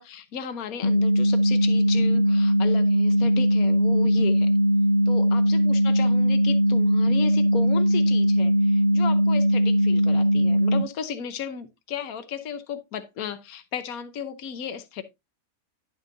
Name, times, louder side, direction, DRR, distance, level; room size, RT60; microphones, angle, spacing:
voice 1, 0.0-4.5 5.1-15.0, left 7 dB, 75° left, 1.4 m, -34 dB
sound 1, 0.8-10.8, equal, 45° left, 0.7 m, -20 dB
10.5 x 8.0 x 2.7 m
omnidirectional pair, 1.5 m